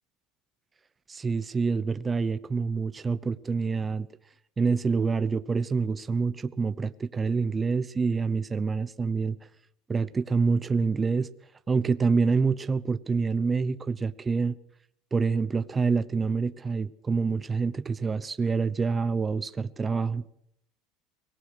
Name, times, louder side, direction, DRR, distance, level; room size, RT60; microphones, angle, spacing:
voice 1, 1.1-4.1 4.6-9.4 9.9-11.3 11.7-14.6 15.1-20.2, right 4 dB, 20° right, 0.8 m, -27 dB
24.0 x 18.5 x 6.3 m
supercardioid pair, 125°, 0 cm